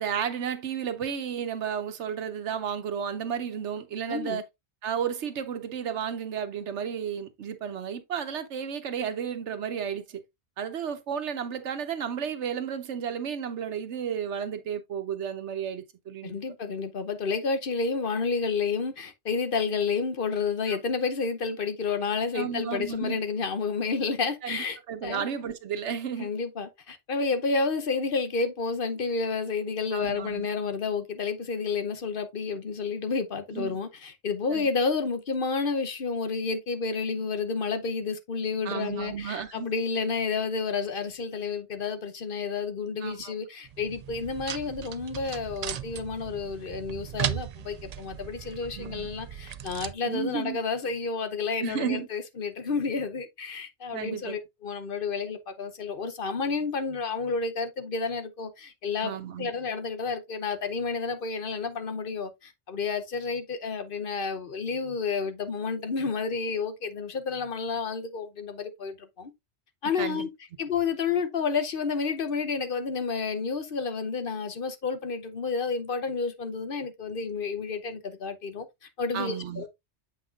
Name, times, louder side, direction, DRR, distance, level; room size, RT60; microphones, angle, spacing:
voice 1, 0.0-4.4 4.8-10.2 10.6-16.4 20.7-20.8 22.3-23.2 24.4-26.3 29.9-30.5 33.5-33.8 34.5-34.7 38.6-39.7 43.0-43.3 48.7-49.1 50.1-50.6 51.6-52.1 53.9-54.4 59.0-59.5 70.0-70.3 79.1-79.6, right 8 dB, 90° right, 1.2 m, -33 dB
voice 2, 4.1-4.4 16.2-24.8 25.0-25.3 26.2-69.3 69.8-70.3 70.6-78.7 79.0-79.7, left 5 dB, 55° left, 1.0 m, -30 dB
sound 1, 43.6-49.9, right 9 dB, 60° right, 0.4 m, -37 dB
7.6 x 5.8 x 2.4 m
omnidirectional pair, 1.1 m